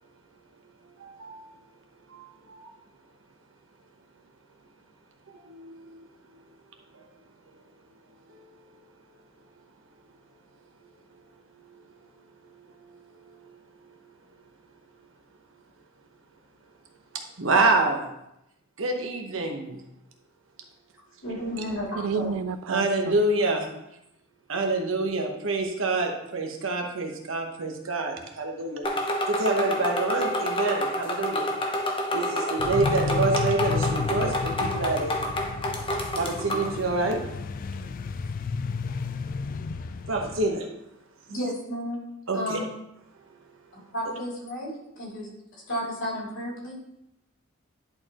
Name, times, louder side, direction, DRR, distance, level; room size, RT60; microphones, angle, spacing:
voice 1, 1.0-1.5 2.1-2.6 5.5-6.1 6.9-7.0 12.7-13.0 13.4-13.5 17.4-18.1 18.8-19.8 22.7-23.7 24.5-28.8 29.3-31.4 32.1-35.2 36.2-37.4 38.0-38.1 40.1-40.7 42.3-42.6, right 3 dB, 70° right, 3 dB, 1.1 m, -27 dB
voice 2, 21.2-22.3 41.3-42.0 42.3-42.7 43.9-45.3 45.7-46.7, equal, 75° left, -5 dB, 2.8 m, -32 dB
voice 3, 22.0-23.2, right 6 dB, 90° right, 14 dB, 0.4 m, -30 dB
sound 1, 28.8-36.7, equal, 25° left, 0.8 m, -29 dB
sound 2, 32.6-40.5, left 4 dB, 45° left, 0.3 m, -32 dB
10.5 x 4.5 x 3.0 m, 0.85 s
head